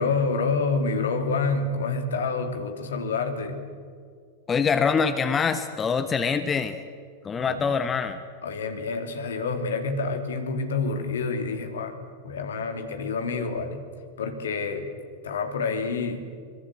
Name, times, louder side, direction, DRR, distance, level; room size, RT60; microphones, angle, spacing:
voice 1, 0.0-3.6 7.3-7.7 8.4-11.9 12.2-13.8 14.2-14.9 15.2-16.3, left 4 dB, 65° left, 6 dB, 3.0 m, -28 dB
voice 2, 4.5-6.8 7.2-8.2, left 6 dB, 20° left, 9 dB, 1.2 m, -24 dB
24.5 x 22.5 x 8.2 m, 2.1 s
figure-of-eight pair, 90°, 0 cm